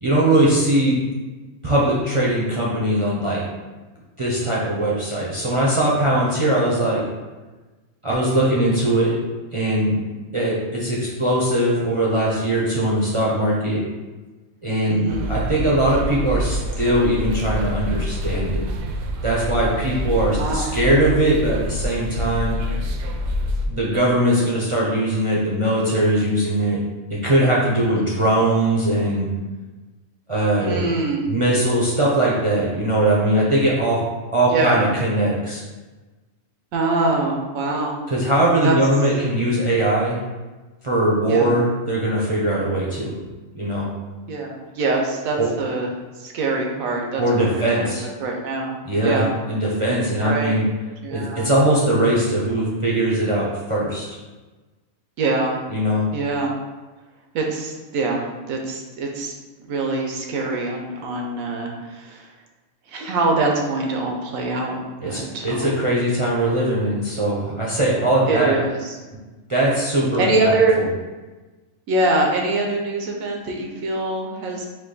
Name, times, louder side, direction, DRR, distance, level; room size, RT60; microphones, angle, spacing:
voice 1, 0.0-1.0 1.6-3.4 4.2-7.0 8.0-9.1 9.5-10.0 10.3-13.8 14.6-18.6 19.2-22.6 23.7-26.8 27.1-29.3 30.3-30.9 31.3-34.0 34.3-35.6 38.1-40.2 40.8-43.2 43.5-43.9 45.4-45.5 47.2-48.0 48.9-50.6 51.1-54.1 55.7-56.1 65.0-68.6 69.5-70.9, right 1 dB, 35° right, -6 dB, 0.5 m, -20 dB
voice 2, 14.9-15.3 20.0-20.8 28.0-28.1 30.6-31.3 34.5-34.9 36.7-38.0 38.6-38.7 41.3-41.6 44.3-45.9 46.2-47.9 48.2-48.8 49.0-49.4 50.2-50.6 51.0-51.6 55.2-55.6 56.1-56.6 57.3-62.3 62.9-65.7 68.3-69.0 70.2-70.8 71.9-74.7, right 3 dB, 90° right, 0 dB, 1.2 m, -24 dB
sound 1, 15.1-23.7, equal, 70° right, 0.9 m, -26 dB
5.0 x 2.2 x 3.9 m, 1.2 s
omnidirectional pair, 1.4 m